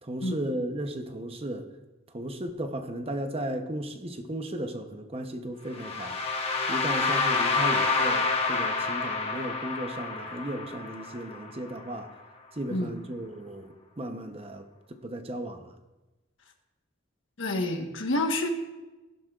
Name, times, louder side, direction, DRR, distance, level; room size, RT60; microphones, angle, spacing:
voice 1, 0.0-1.7 2.1-6.2 6.7-12.1 12.6-15.7, right 1 dB, 30° right, 6 dB, 0.8 m, -35 dB
sound 1, 5.7-11.7, left 4 dB, 30° left, 1.2 m, -28 dB
voice 2, 17.4-18.5, left 1 dB, 75° left, 4 dB, 1.3 m, -28 dB
16.5 x 11.5 x 2.4 m, 1.1 s
head